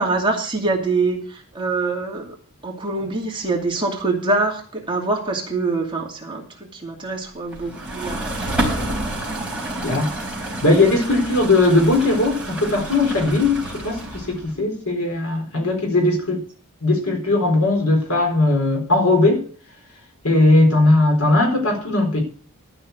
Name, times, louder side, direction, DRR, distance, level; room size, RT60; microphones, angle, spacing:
voice 1, 0.0-2.3 2.6-8.6, right 3 dB, 20° right, -1 dB, 2.5 m, -24 dB
sound 1, 7.5-14.5, right 1 dB, 5° right, 4.0 m, -29 dB
voice 2, 9.8-10.1 10.6-16.4 16.8-19.4 20.2-22.2, left 2 dB, 70° left, 2 dB, 4.3 m, -18 dB
13.0 x 5.7 x 8.0 m, 0.43 s
head